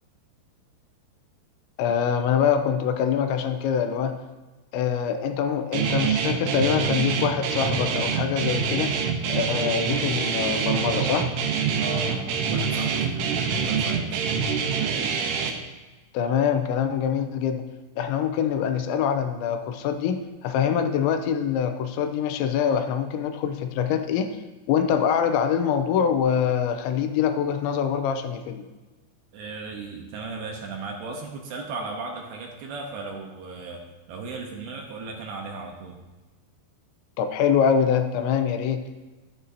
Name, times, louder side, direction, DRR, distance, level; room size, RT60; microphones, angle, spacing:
voice 1, 1.8-4.2 4.7-8.9 9.3-11.3 16.1-17.7 18.0-24.4 24.7-28.7 37.2-38.8, left 8 dB, 85° left, 7 dB, 3.0 m, -24 dB
Guitar, 5.7-15.5, right 6 dB, 90° right, 3.4 m, -25 dB
voice 2, 11.7-14.2 29.3-36.0, right 3 dB, 70° right, 1 dB, 2.6 m, -36 dB
12.5 x 10.5 x 2.7 m, 1.2 s
omnidirectional pair, 5.3 m